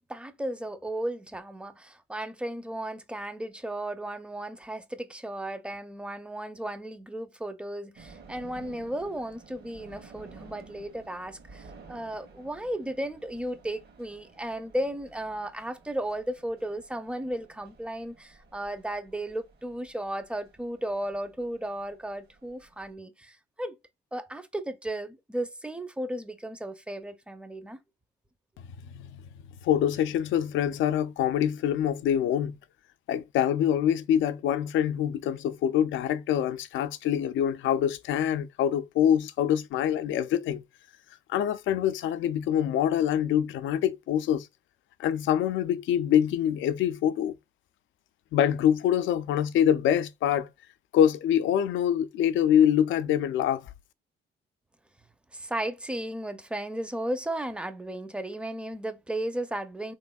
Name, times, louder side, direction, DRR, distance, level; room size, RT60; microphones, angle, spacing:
voice 1, 0.1-23.7 24.1-27.8 55.3-59.9, right 1 dB, 5° right, 0.5 m, -35 dB
sound 1, 7.9-22.9, right 4 dB, 55° right, 1.0 m, -53 dB
voice 2, 29.6-32.6 33.1-40.6 41.3-44.5 45.0-47.3 48.3-50.5 50.9-53.6, left 10 dB, 75° left, 0.4 m, -25 dB
3.4 x 3.0 x 2.3 m
cardioid pair, 90°, 20 cm